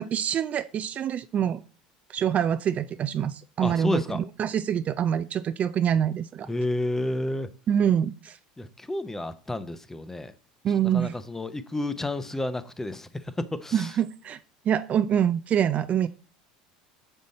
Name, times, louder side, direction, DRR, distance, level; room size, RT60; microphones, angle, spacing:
voice 1, 0.0-1.6 2.1-6.5 7.7-8.4 10.6-11.1 13.7-14.4 14.7-16.1, right 9 dB, 40° right, 0.4 m, -25 dB
voice 2, 3.6-4.2 6.4-7.5 8.6-10.3 10.9-13.9, left 1 dB, 10° left, 0.7 m, -30 dB
6.3 x 5.5 x 4.1 m
hypercardioid pair, 75°, 4 cm